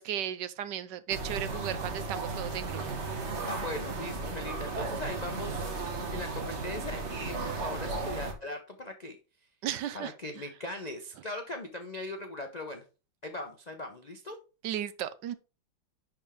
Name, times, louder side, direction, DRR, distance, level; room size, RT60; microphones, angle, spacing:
voice 1, 0.0-2.8 9.6-10.1 14.6-15.3, right 10 dB, 75° right, 1.2 m, -35 dB
sound 1, 1.1-8.3, right 3 dB, 40° right, 1.5 m, -35 dB
voice 2, 3.5-9.2 9.9-12.8 13.2-14.4, left 1 dB, 55° left, 0.4 m, -39 dB
10.5 x 4.4 x 3.6 m
omnidirectional pair, 2.0 m